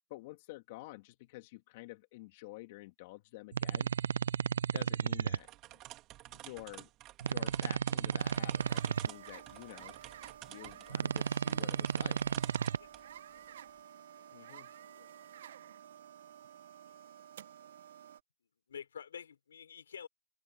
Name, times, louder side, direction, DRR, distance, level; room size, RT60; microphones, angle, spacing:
voice 1, 0.1-3.9 4.7-5.5 6.3-6.9 7.2-10.0 10.4-12.2 14.3-14.7, left 21 dB, 45° left, 2.1 m, -49 dB
sound 1, 3.5-5.4 7.2-9.1 10.9-12.8, right 7 dB, 80° right, 0.7 m, -33 dB
sound 2, 5.4-13.1, right 16 dB, 30° right, 3.5 m, -51 dB
sound 3, 8.2-18.2, right 10 dB, 60° right, 1.2 m, -52 dB
voice 2, 14.2-15.4 18.7-20.1, left 7 dB, 80° left, 4.1 m, -50 dB
open air
hypercardioid pair, 145°, 0 cm